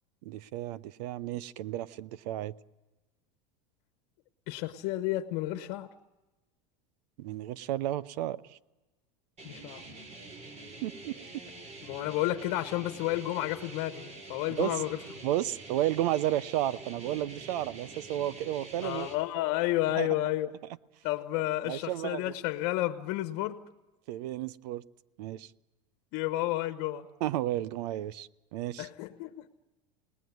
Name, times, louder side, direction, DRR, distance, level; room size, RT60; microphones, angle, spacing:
voice 1, 0.2-2.5 7.2-8.6 10.8-11.1 14.6-14.8 15.2-19.1 20.0-20.1 21.6-22.3 24.1-24.8 25.2-25.5 27.2-28.9, right 13 dB, 75° right, 0.9 m, -32 dB
voice 2, 4.5-5.9 9.4-9.8 11.9-15.0 18.8-20.5 21.0-23.6 26.1-27.1 28.8-29.5, left 15 dB, 55° left, 1.3 m, -31 dB
sound 1, 9.4-19.2, right 3 dB, 30° right, 6.3 m, -46 dB
28.5 x 20.0 x 9.5 m
supercardioid pair, 135°, 21 cm